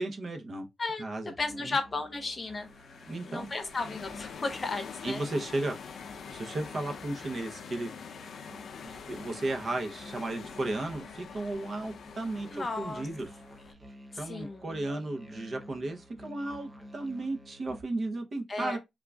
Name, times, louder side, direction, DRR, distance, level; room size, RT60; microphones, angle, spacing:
voice 1, 0.0-0.7 1.0-1.3 1.6-1.8 3.1-3.5 5.0-5.8 6.3-7.9 8.8-13.3 14.2-18.8, right 2 dB, 50° right, 0.7 m, -34 dB
voice 2, 1.4-2.7 3.3-5.3 12.4-13.1 14.3-14.7 18.5-18.8, left 3 dB, 35° left, 0.7 m, -34 dB
Musical instrument, 1.4-17.8, equal, 15° right, 0.6 m, -51 dB
sound 1, 2.4-13.7, left 6 dB, 80° left, 0.5 m, -45 dB
3.6 x 2.4 x 3.3 m
wide cardioid pair, 125°, 0 cm